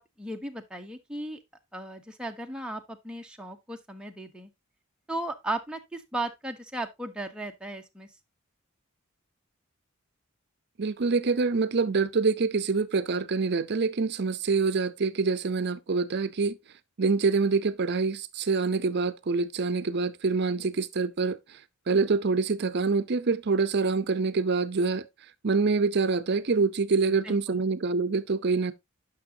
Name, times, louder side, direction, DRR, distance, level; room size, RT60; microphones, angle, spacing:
voice 1, 0.0-1.4 1.7-4.5 5.1-8.1 27.2-27.7, right 1 dB, 5° right, 0.8 m, -36 dB
voice 2, 10.8-16.6 17.0-21.4 21.9-25.1 25.4-28.7, right 4 dB, 55° right, 0.6 m, -26 dB
10.0 x 5.9 x 2.7 m
head